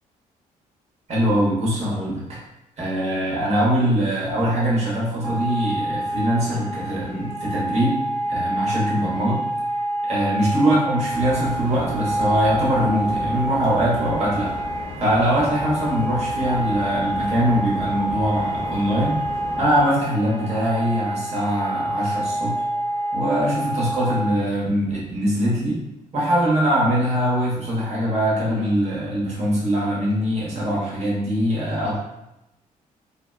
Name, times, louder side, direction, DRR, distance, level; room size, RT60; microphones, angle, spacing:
voice 1, 1.1-2.4 2.8-8.0 8.3-9.4 10.1-14.5 15.0-19.2 19.6-22.6 23.1-25.8 26.1-32.0, equal, 45° right, -6 dB, 1.2 m, -22 dB
sound 1, 5.2-24.4, right 1 dB, 90° right, 0.9 m, -27 dB
sound 2, 11.1-19.8, left 1 dB, 15° right, 1.2 m, -36 dB
2.8 x 2.2 x 2.3 m, 0.88 s
cardioid pair, 90°, 15 cm